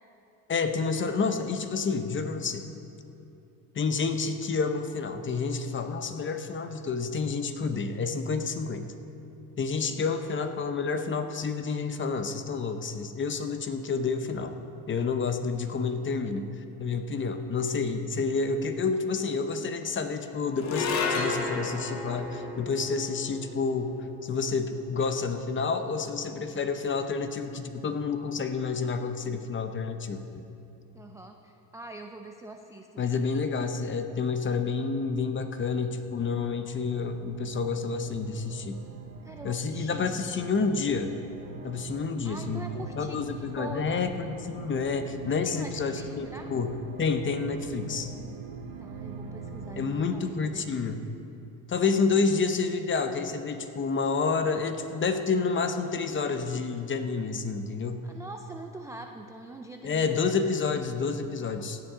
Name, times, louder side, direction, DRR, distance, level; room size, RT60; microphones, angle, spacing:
voice 1, 0.5-2.7 3.7-8.9 9.6-14.5 14.9-16.5 16.8-30.2 33.0-38.8 39.4-41.2 41.6-44.1 44.5-46.7 47.0-48.1 49.8-51.0 51.7-58.1 59.8-61.8, left 4 dB, 25° left, 8 dB, 0.8 m, -29 dB
sound 1, 20.6-27.0, left 4 dB, 85° left, 1.5 m, -34 dB
voice 2, 30.9-33.0 39.2-40.6 42.2-44.0 45.4-46.5 48.8-50.9 58.0-60.3, right 2 dB, 5° right, 3 dB, 0.4 m, -44 dB
sound 2, 35.3-50.1, right 4 dB, 45° right, 1.5 m, -43 dB
17.0 x 10.0 x 3.7 m, 2.8 s
supercardioid pair, 105°, 46 cm